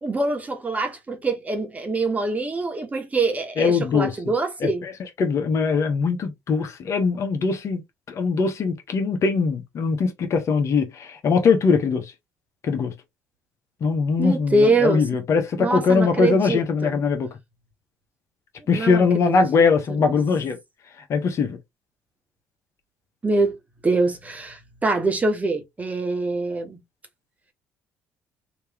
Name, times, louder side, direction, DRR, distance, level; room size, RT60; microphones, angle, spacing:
voice 1, 0.0-4.8 14.2-15.0 15.6-17.0 18.7-19.6 20.0-20.2 23.2-23.6 23.8-26.8, right 2 dB, 25° right, 1.4 m, -24 dB
voice 2, 3.6-4.1 4.6-4.9 5.2-7.8 8.1-12.1 12.6-12.9 13.8-17.3 18.7-20.6 21.1-21.6, left 5 dB, 55° left, 1.2 m, -21 dB
3.3 x 3.0 x 3.0 m
hypercardioid pair, 60°, 6 cm